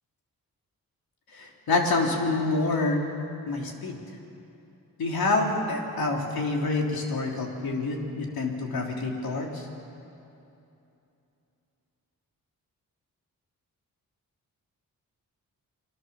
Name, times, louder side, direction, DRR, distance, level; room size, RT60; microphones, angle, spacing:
voice 1, 1.3-3.0 3.5-4.0 5.0-9.7, left 3 dB, 80° left, 0 dB, 3.8 m, -27 dB
29.5 x 22.5 x 7.3 m, 2.8 s
cardioid pair, 75°, 36 cm